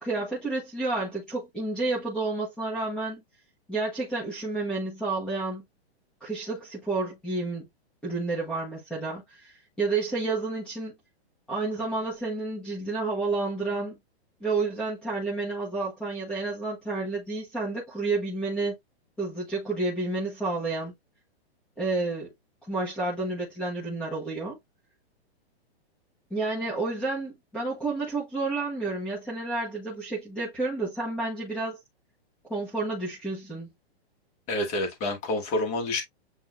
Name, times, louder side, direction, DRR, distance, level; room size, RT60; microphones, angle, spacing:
voice 1, 0.0-3.2 3.7-5.6 6.2-7.7 8.0-10.9 11.5-14.0 14.4-18.7 19.2-20.9 21.8-22.3 22.7-24.6 26.3-31.8 32.5-33.7, right 3 dB, 5° left, 1.1 m, -30 dB
voice 2, 34.5-36.0, left 2 dB, 20° left, 1.4 m, -28 dB
7.9 x 2.8 x 2.4 m
hypercardioid pair, 170°, 32 cm